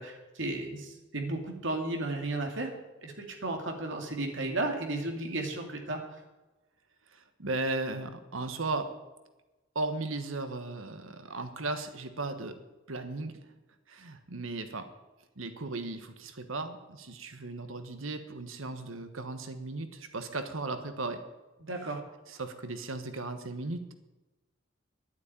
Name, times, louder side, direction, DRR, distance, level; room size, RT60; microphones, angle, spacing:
voice 1, 0.0-2.7 3.0-6.2 21.6-22.0, right 2 dB, 65° right, 2 dB, 2.6 m, -34 dB
voice 2, 7.1-8.9 9.7-12.6 12.9-13.4 13.9-14.9 15.4-21.2 22.3-23.9, right 2 dB, 85° right, 8 dB, 1.4 m, -36 dB
11.5 x 9.3 x 9.0 m, 1.1 s
head